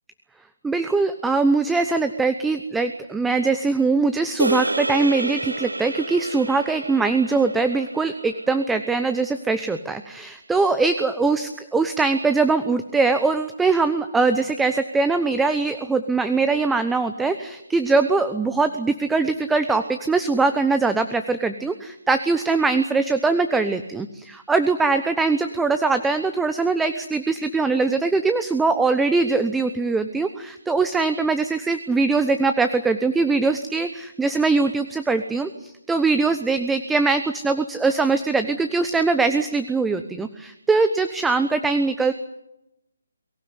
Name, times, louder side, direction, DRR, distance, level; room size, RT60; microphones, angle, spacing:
voice 1, 0.6-42.1, right 4 dB, 5° right, 9 dB, 0.9 m, -22 dB
sound 1, 4.4-8.9, right 2 dB, 80° right, 1.6 m, -29 dB
23.5 x 16.0 x 9.8 m, 0.86 s
figure-of-eight pair, 145°, 0 cm